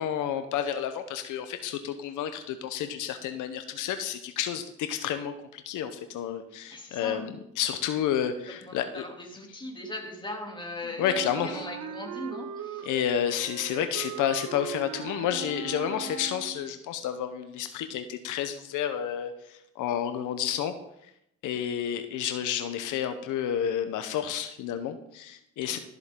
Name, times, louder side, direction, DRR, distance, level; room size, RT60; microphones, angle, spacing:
voice 1, 0.0-9.0 11.0-11.6 12.8-20.7 21.4-25.8, left 9 dB, 90° left, 8 dB, 0.9 m, -30 dB
voice 2, 6.7-7.3 8.6-12.9 25.6-25.8, left 1 dB, 15° left, 1 dB, 2.9 m, -39 dB
Wind instrument woodwind instrument, 11.0-16.8, right 8 dB, 65° right, 0.9 m, -39 dB
13.5 x 7.7 x 3.8 m, 0.77 s
cardioid pair, 90°, 30 cm